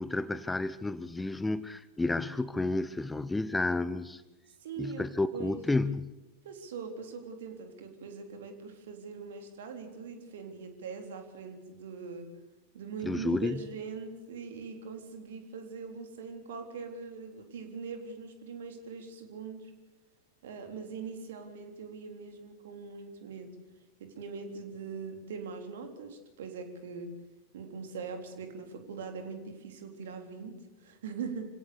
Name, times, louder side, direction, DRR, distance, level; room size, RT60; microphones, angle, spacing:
voice 1, 0.0-4.2 4.8-6.1 13.0-13.6, left 2 dB, 10° left, 16 dB, 0.8 m, -31 dB
voice 2, 4.6-5.0 5.3-5.6 6.4-12.3 12.7-19.7 20.4-23.6 24.0-27.2 27.5-31.5, right 5 dB, 60° right, 6 dB, 3.6 m, -42 dB
26.0 x 17.0 x 6.7 m, 1.1 s
figure-of-eight pair, 90°, 0 cm